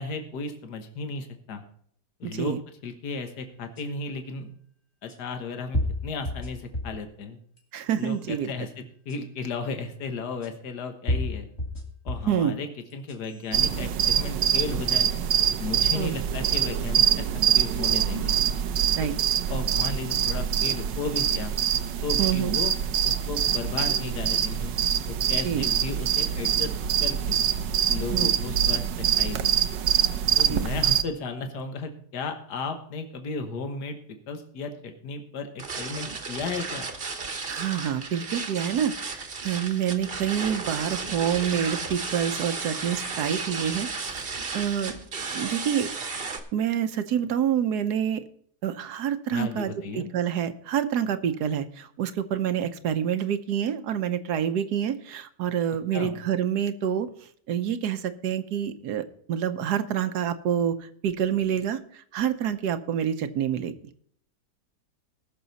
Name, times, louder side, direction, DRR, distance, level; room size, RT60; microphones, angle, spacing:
voice 1, 0.0-1.6 2.2-4.5 5.0-7.4 8.0-11.5 12.1-15.1 15.6-18.4 19.0-19.1 19.5-21.6 22.0-22.7 23.0-24.7 25.1-26.7 27.0-27.4 27.9-29.7 30.4-36.9 49.3-50.1 55.9-56.2, left 4 dB, 70° left, 6 dB, 1.8 m, -34 dB
voice 2, 2.2-2.6 7.7-8.5 12.3-12.6 15.9-16.2 19.0-19.1 22.2-22.6 25.4-25.6 28.1-28.3 30.5-30.6 37.5-44.9 45.3-45.9 46.5-48.2 48.6-57.1 57.5-60.7 61.0-61.8 62.1-63.7, right 9 dB, 70° right, 11 dB, 1.3 m, -27 dB
sound 1, 3.8-3.9 5.1-5.2 5.7-7.0 7.6-8.1 9.1-9.2 10.4-10.5 11.1-12.4 12.9-13.5, left 1 dB, 40° left, 2.3 m, -30 dB
sound 2, 13.5-31.0, right 9 dB, 90° right, 1.4 m, -25 dB
sound 3, 35.6-46.4, right 4 dB, 35° right, 1.2 m, -34 dB
19.5 x 6.6 x 4.1 m, 0.62 s
omnidirectional pair, 1.9 m